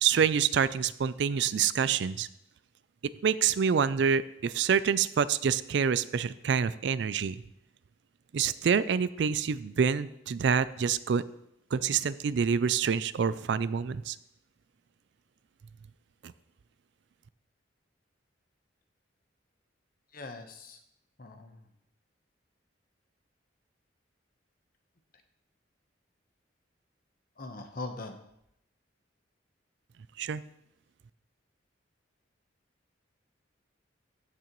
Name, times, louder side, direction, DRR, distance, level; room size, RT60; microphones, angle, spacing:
voice 1, 0.0-2.3 3.2-7.4 8.3-11.2 11.7-14.2 16.2-16.3 30.2-30.4, right 7 dB, 60° right, 16 dB, 0.4 m, -27 dB
voice 2, 20.1-20.8 21.2-21.7 27.4-28.2, left 2 dB, 50° left, 6 dB, 1.0 m, -41 dB
14.5 x 6.6 x 3.0 m, 0.79 s
head